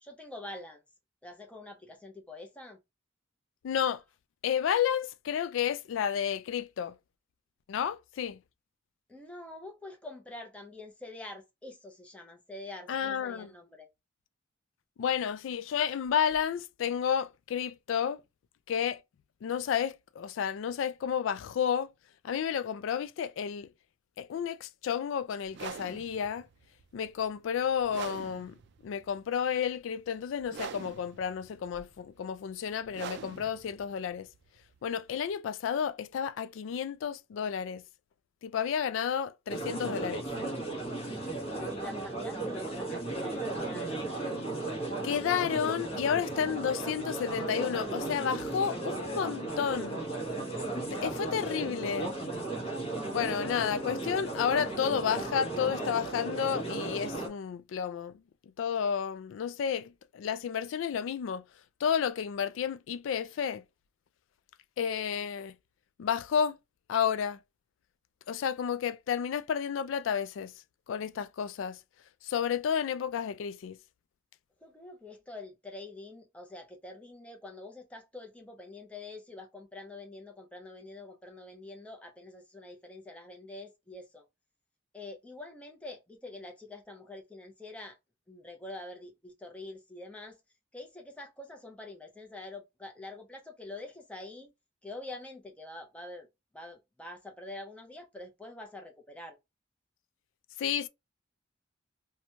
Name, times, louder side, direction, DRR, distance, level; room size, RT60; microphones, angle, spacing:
voice 1, 0.0-0.8 1.2-2.8 9.1-13.9 41.3-44.0 74.6-84.3 84.9-88.0 88.3-90.4 90.7-94.5 94.8-96.3 96.5-99.4, left 2 dB, 5° left, 0.6 m, -45 dB
voice 2, 3.6-4.0 4.4-7.0 7.7-8.4 12.9-13.5 15.0-18.2 18.7-19.0 19.4-21.9 22.2-23.7 24.2-26.5 26.9-28.6 28.8-34.3 34.8-37.8 38.4-40.3 45.0-50.1 50.9-52.1 53.1-58.2 58.6-61.4 61.8-63.6 64.8-65.5 66.0-66.6 66.9-67.4 68.3-70.5 70.9-71.8 72.2-73.8 100.6-100.9, left 8 dB, 75° left, 0.3 m, -31 dB
sound 1, 25.4-35.3, right 7 dB, 60° right, 0.3 m, -45 dB
sound 2, 39.5-57.3, right 2 dB, 30° left, 0.9 m, -35 dB
2.9 x 2.2 x 2.7 m
head